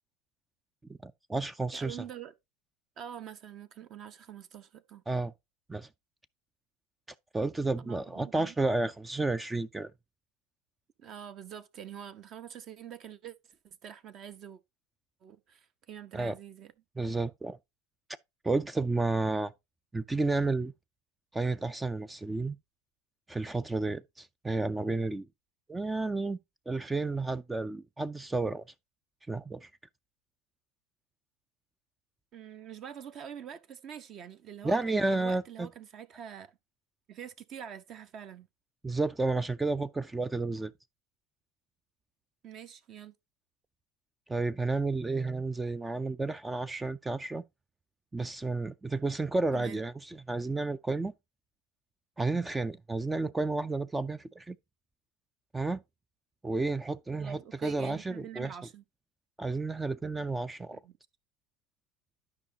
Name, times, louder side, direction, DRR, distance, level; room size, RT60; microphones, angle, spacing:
voice 1, 1.0-2.0 5.1-5.3 5.7-5.9 7.3-9.9 16.1-16.3 17.0-17.6 18.4-19.5 19.9-20.7 21.3-22.6 23.3-25.3 25.7-26.4 26.7-28.6 29.3-29.7 34.6-35.7 38.8-40.7 44.3-47.4 48.1-51.1 52.2-54.6 55.5-55.8 56.4-58.6 59.4-60.8, right 3 dB, 10° right, 0.3 m, -31 dB
voice 2, 1.7-2.3 3.0-5.0 7.8-8.5 11.0-14.6 15.2-16.7 32.3-36.5 37.1-38.5 42.4-43.1 49.5-49.8 57.1-58.8 60.7-61.0, right 9 dB, 40° right, 0.8 m, -45 dB
12.0 x 5.1 x 2.8 m
hypercardioid pair, 90°, 0 cm